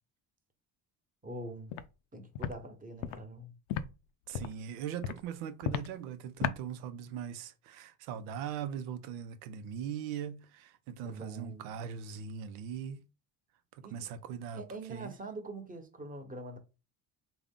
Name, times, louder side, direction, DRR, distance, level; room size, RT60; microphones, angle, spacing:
voice 1, 1.2-1.7 2.1-3.6 11.0-11.7 13.8-13.9 14.5-16.6, right 2 dB, 20° right, 1.1 m, -43 dB
Walk footsteps, 1.7-1.9 2.3-2.5 3.0-3.2 3.7-3.8 4.3-4.6 5.0-5.2 5.6-5.9 6.4-6.6, left 9 dB, 90° left, 0.5 m, -33 dB
voice 2, 4.3-13.0 13.7-14.6 14.9-15.1, right 8 dB, 90° right, 0.6 m, -40 dB
3.5 x 2.2 x 3.7 m
supercardioid pair, 75°, 47 cm